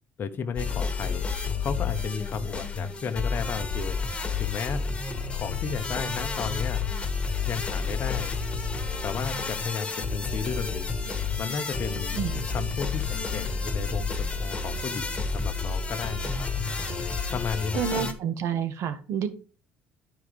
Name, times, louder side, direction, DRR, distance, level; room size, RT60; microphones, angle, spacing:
voice 1, 0.2-1.2 1.6-4.0 4.4-4.9 5.3-6.8 7.4-8.3 9.0-11.0 11.4-12.2 12.5-16.5 17.3-18.0, left 6 dB, 45° left, 1.1 m, -33 dB
sound 1, 0.5-18.1, left 4 dB, 20° left, 2.1 m, -30 dB
voice 2, 17.7-19.3, right 8 dB, 70° right, 1.6 m, -28 dB
10.5 x 5.0 x 4.9 m
supercardioid pair, 85°, 5 cm